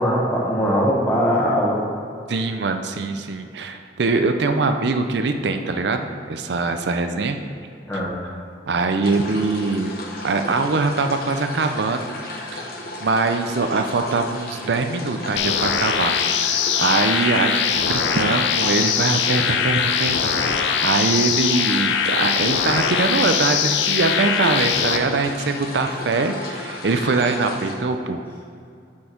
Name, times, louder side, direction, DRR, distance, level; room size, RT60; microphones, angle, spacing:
voice 1, 0.0-1.8 7.9-8.1, equal, 10° left, -5 dB, 1.2 m, -20 dB
voice 2, 2.3-7.4 7.9-8.4 8.7-10.0 10.2-12.0 12.5-12.7 13.0-16.2 16.5-28.2, right 3 dB, 65° right, 6 dB, 0.5 m, -23 dB
sound 1, 9.0-27.7, left 2 dB, 50° left, 0.9 m, -34 dB
sound 2, 15.4-25.0, left 7 dB, 75° left, 0.5 m, -22 dB
8.4 x 4.5 x 4.5 m, 2.3 s
head